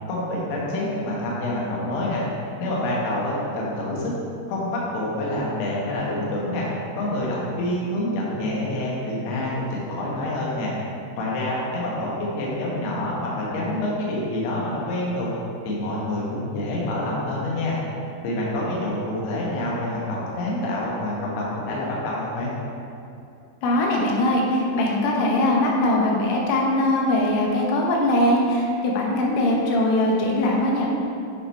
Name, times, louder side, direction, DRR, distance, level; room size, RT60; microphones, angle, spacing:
voice 1, 0.1-2.2 2.6-4.1 4.5-6.7 7.0-10.7 11.2-15.3 15.6-17.8 18.2-22.5, left 1 dB, 65° left, -5 dB, 3.0 m, -27 dB
voice 2, 23.6-30.9, left 1 dB, 85° left, -2 dB, 3.5 m, -21 dB
9.9 x 4.0 x 4.3 m, 2.6 s
omnidirectional pair, 5.7 m